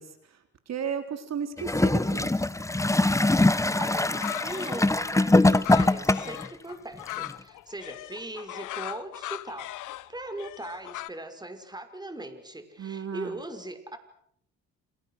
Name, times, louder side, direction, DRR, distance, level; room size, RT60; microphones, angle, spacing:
voice 1, 0.0-2.5 12.8-13.4, right 7 dB, 60° right, 7 dB, 3.9 m, -35 dB
Gurgling / Toilet flush, 1.6-6.5 7.3-7.4, left 2 dB, 10° left, 1.2 m, -22 dB
voice 2, 3.8-14.0, right 1 dB, 15° right, 8 dB, 5.6 m, -40 dB
sound 1, 3.9-11.1, left 16 dB, 90° left, 1.2 m, -39 dB
29.5 x 27.5 x 6.6 m, 0.68 s
cardioid pair, 90°, 30 cm